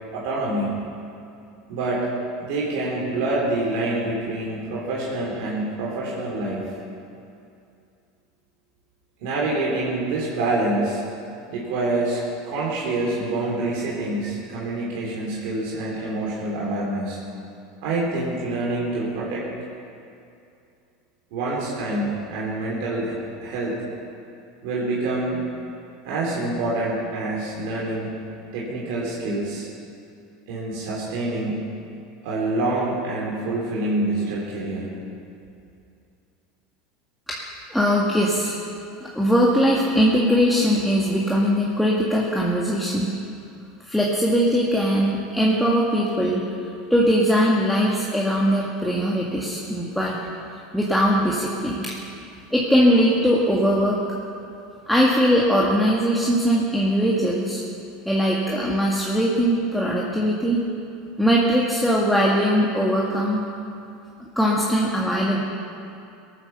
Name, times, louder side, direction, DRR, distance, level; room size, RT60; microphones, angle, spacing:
voice 1, 0.1-0.7 1.7-2.1 2.4-6.8 9.2-11.0 11.5-17.2 17.8-19.5 21.3-23.8 24.6-25.4 26.0-28.1 28.5-29.7 30.5-31.7 32.2-34.9, right 2 dB, 70° right, -5 dB, 3.6 m, -26 dB
voice 2, 37.7-38.6 39.0-43.1 43.9-46.5 46.9-50.1 50.7-51.9 52.5-54.0 54.9-57.6 58.1-60.6 61.2-63.4 64.2-65.4, equal, ahead, -5 dB, 2.0 m, -20 dB
18.0 x 9.4 x 7.0 m, 2.6 s
hypercardioid pair, 95°, 0 cm